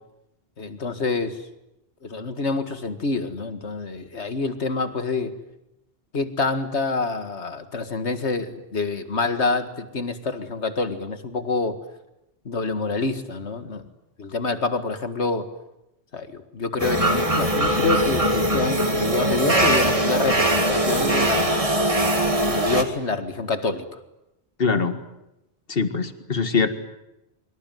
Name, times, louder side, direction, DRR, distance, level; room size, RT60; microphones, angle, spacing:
voice 1, 0.6-1.4 2.0-5.4 6.1-11.8 12.5-13.9 14.2-15.5 16.1-21.6 22.4-23.9, left 3 dB, 75° left, 10 dB, 2.2 m, -27 dB
sound 1, 16.8-22.8, right 1 dB, 30° right, 2.5 m, -21 dB
voice 2, 24.6-25.0 25.7-26.7, left 5 dB, 55° left, 10 dB, 2.1 m, -22 dB
24.5 x 24.5 x 9.4 m, 0.90 s
omnidirectional pair, 1.1 m